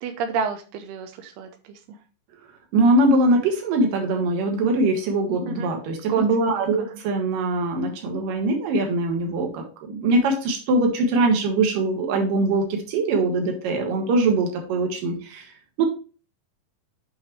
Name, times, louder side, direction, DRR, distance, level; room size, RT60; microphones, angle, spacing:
voice 1, 0.0-1.5 5.5-5.7 6.1-6.3 6.5-7.0, right 6 dB, 90° right, 6 dB, 2.8 m, -29 dB
voice 2, 2.7-15.5 15.8-15.9, right 2 dB, 65° right, 3 dB, 3.0 m, -22 dB
7.3 x 5.7 x 3.2 m, 0.35 s
omnidirectional pair, 4.5 m